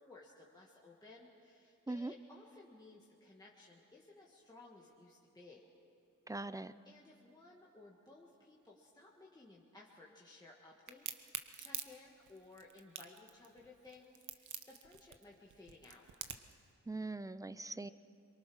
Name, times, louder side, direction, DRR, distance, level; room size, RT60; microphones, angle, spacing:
voice 1, 0.0-5.7 6.8-16.1, left 2 dB, 15° left, -3 dB, 1.7 m, -58 dB
voice 2, 6.3-6.7 16.9-17.9, right 2 dB, 10° right, 14 dB, 0.4 m, -41 dB
Crack, 10.9-16.6, right 7 dB, 70° right, 1.2 m, -45 dB
26.5 x 23.5 x 6.2 m, 2.6 s
wide cardioid pair, 175°, 31 cm